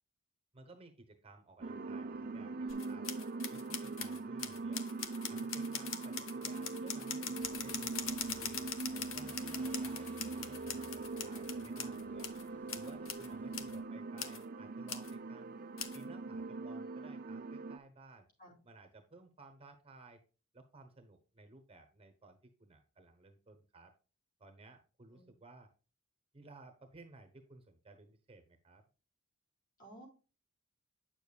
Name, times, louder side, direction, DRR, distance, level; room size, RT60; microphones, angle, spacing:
voice 1, 0.5-3.1 3.5-4.9 5.3-8.7 9.1-12.3 12.7-15.6 15.9-18.3 18.6-20.2 20.5-23.9 24.4-25.7 26.3-28.8, right 2 dB, 25° right, 6 dB, 1.0 m, -57 dB
sound 1, 1.6-17.8, right 3 dB, 40° right, 0.5 m, -42 dB
sound 2, 2.7-12.4 12.7-13.3 13.5-13.8 14.2-14.4 14.9-15.1 15.8-16.0, left 7 dB, 65° left, 1.0 m, -42 dB
voice 2, 4.1-4.2 18.4-18.6 25.1-25.3 29.8-30.1, right 1 dB, 40° left, -1 dB, 4.4 m, -57 dB
sound 3, 7.4-13.8, equal, 5° left, 1.3 m, -61 dB
9.0 x 7.0 x 2.3 m, 0.33 s
head